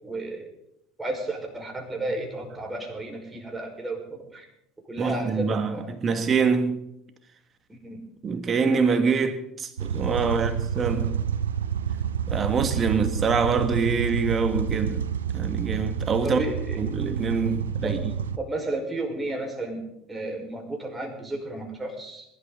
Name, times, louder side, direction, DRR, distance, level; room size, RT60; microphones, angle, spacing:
voice 1, 0.0-0.5 1.0-4.5 4.9-5.9 7.7-8.0 10.2-10.6 16.2-16.8 17.8-18.1 18.4-22.3, right 2 dB, 15° right, 5.3 m, -33 dB
voice 2, 5.0-6.9 8.2-11.2 12.3-16.4 16.8-18.1, right 5 dB, 35° right, 2.0 m, -25 dB
sound 1, 9.8-18.4, right 8 dB, 80° right, 0.6 m, -29 dB
22.0 x 12.0 x 4.1 m
hypercardioid pair, 70°, 0 cm